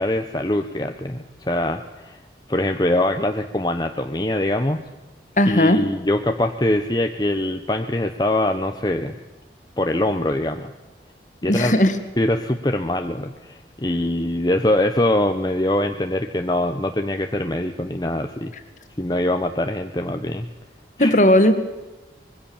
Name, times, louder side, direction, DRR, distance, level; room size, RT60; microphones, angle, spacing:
voice 1, 0.0-2.2 2.5-4.8 5.4-9.2 9.8-10.7 11.4-11.7 12.2-18.5 19.0-20.5 21.0-21.1, left 1 dB, 20° left, 5 dB, 1.1 m, -23 dB
voice 2, 5.4-5.9 11.4-12.0 21.0-21.5, left 1 dB, 45° left, 9 dB, 2.2 m, -16 dB
25.0 x 22.0 x 7.3 m, 1.1 s
head